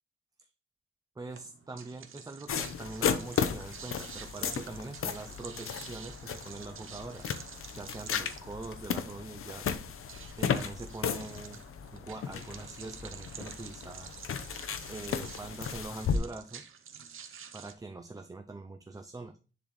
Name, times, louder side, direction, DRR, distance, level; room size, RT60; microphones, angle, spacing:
voice 1, 1.2-7.3 7.7-9.7 10.4-11.6 11.9-14.1 14.9-16.7 17.5-19.4, right 3 dB, 15° right, 6 dB, 0.5 m, -43 dB
sound 1, 1.3-17.7, right 7 dB, 70° right, 0.9 m, -49 dB
sound 2, 2.5-16.2, left 7 dB, 85° left, 0.7 m, -35 dB
10.0 x 4.0 x 3.1 m, 0.36 s
wide cardioid pair, 135°, 21 cm